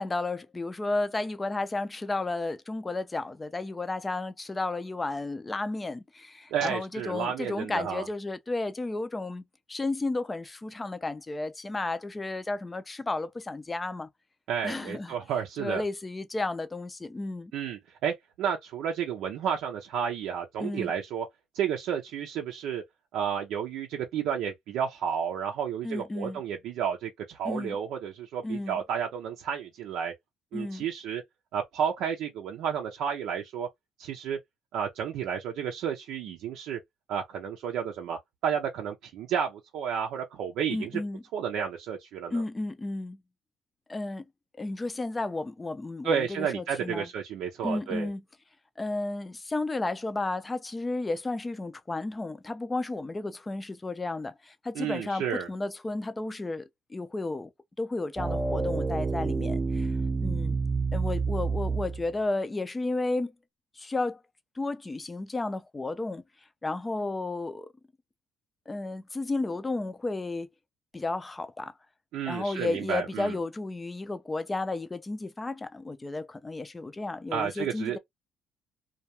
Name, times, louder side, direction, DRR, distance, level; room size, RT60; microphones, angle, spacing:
voice 1, 0.0-9.4 9.7-14.1 14.6-15.2 15.6-17.5 20.6-20.9 25.8-26.4 27.4-27.8 28.4-28.8 30.5-30.8 40.7-41.2 42.3-43.2 43.9-44.2 44.6-47.1 47.6-48.2 48.8-56.6 56.9-57.5 57.8-59.9 60.2-60.5 60.9-63.3 63.8-64.2 64.6-66.2 66.6-67.7 68.7-70.5 70.9-71.7 72.3-78.0, left 2 dB, 20° left, 0.5 m, -33 dB
voice 2, 6.5-8.1 14.5-15.8 17.5-21.3 21.5-22.8 23.1-30.1 30.5-31.2 31.5-33.7 34.0-34.4 34.7-36.8 37.1-41.0 41.3-42.4 46.0-48.1 54.7-55.5 72.1-73.4 77.3-78.0, right 8 dB, 75° right, 0.5 m, -31 dB
sound 1, 58.2-62.1, right 4 dB, 20° right, 0.7 m, -28 dB
2.3 x 2.2 x 2.8 m
supercardioid pair, 70°, 0 cm